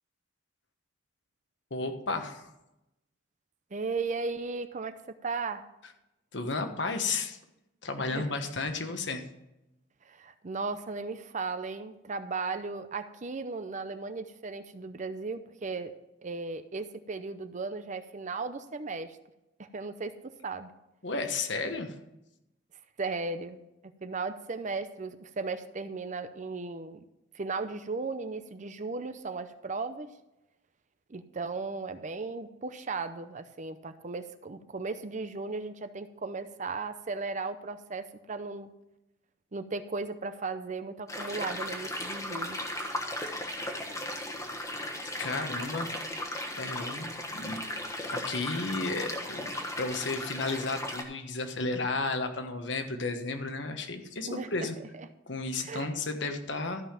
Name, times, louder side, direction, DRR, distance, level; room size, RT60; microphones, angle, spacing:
voice 1, 1.7-2.5 6.3-7.4 7.8-9.2 21.0-21.9 45.2-45.9 46.6-47.6 48.0-54.8 55.3-56.8, left 3 dB, 65° left, 7 dB, 1.3 m, -33 dB
voice 2, 3.7-5.6 8.0-8.3 10.0-15.9 16.2-19.2 19.6-20.1 20.4-20.7 23.0-23.6 24.0-27.0 27.3-30.1 31.1-38.7 39.5-42.6 54.3-54.5 54.8-55.1 55.6-55.9, right 4 dB, 40° right, 10 dB, 0.6 m, -36 dB
sound 1, 41.1-51.0, left 1 dB, 15° left, 1.3 m, -36 dB
13.5 x 5.6 x 5.8 m, 0.91 s
head